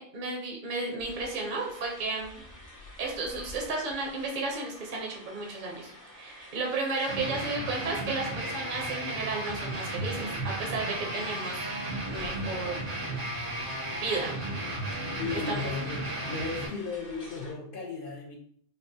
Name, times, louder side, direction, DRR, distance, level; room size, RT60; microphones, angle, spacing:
voice 1, 0.0-2.4 3.0-11.7 12.0-12.8 13.9-14.3 15.5-15.7, right 3 dB, 50° right, -1 dB, 0.7 m, -33 dB
sound 1, 1.0-17.5, left 1 dB, 70° left, 1.8 m, -50 dB
sound 2, 7.1-16.7, right 1 dB, 85° right, 1.6 m, -34 dB
voice 2, 15.2-18.4, left 4 dB, 55° left, 0 dB, 0.7 m, -35 dB
5.1 x 2.0 x 2.7 m, 0.63 s
omnidirectional pair, 1.3 m